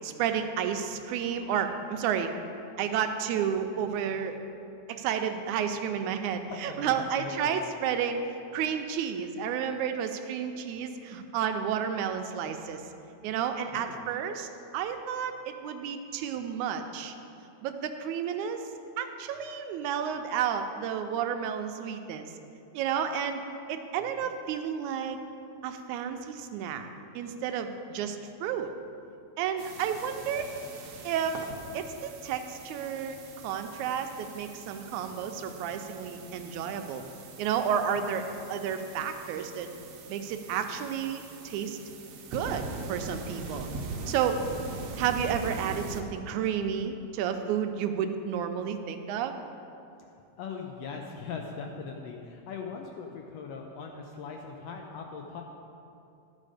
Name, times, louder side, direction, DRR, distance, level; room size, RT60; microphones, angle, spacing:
voice 1, 0.0-2.3 2.8-4.4 4.9-12.8 13.2-14.5 14.7-17.1 17.6-18.6 19.0-22.3 22.7-23.4 23.7-25.2 25.6-26.9 27.1-28.7 29.4-30.5 31.0-31.4 31.7-33.2 33.4-37.0 37.4-39.7 40.1-41.8 42.3-43.7 44.1-44.4 45.0-49.4, right 8 dB, 85° right, 7 dB, 2.0 m, -31 dB
voice 2, 6.5-7.6 13.7-14.1 38.0-38.1 44.0-44.3 50.4-55.4, left 5 dB, 80° left, 2 dB, 1.5 m, -40 dB
sound 1, 29.6-46.0, right 3 dB, 70° right, 1.5 m, -42 dB
12.0 x 5.2 x 4.9 m, 2.7 s
omnidirectional pair, 3.4 m